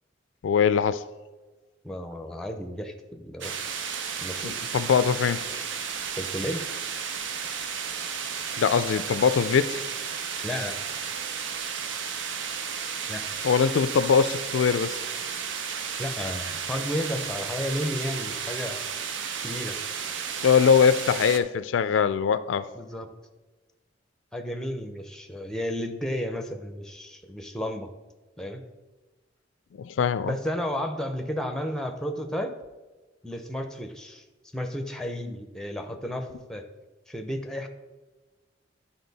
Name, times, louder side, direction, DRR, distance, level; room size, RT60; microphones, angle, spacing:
voice 1, 0.4-1.0 4.4-5.4 8.6-9.8 13.4-15.0 20.4-22.7 29.8-30.3, left 6 dB, 85° left, 0.3 m, -22 dB
voice 2, 1.8-3.5 4.2-4.5 6.2-6.6 10.4-10.8 13.1-13.4 16.0-18.8 19.4-19.8 22.7-23.1 24.3-27.9 28.4-28.6 30.2-32.5 33.2-34.2 34.5-36.6 37.1-37.7, left 1 dB, 5° left, 0.6 m, -32 dB
sound 1, 3.4-21.4, right 6 dB, 80° right, 0.6 m, -33 dB
10.5 x 4.3 x 4.0 m
head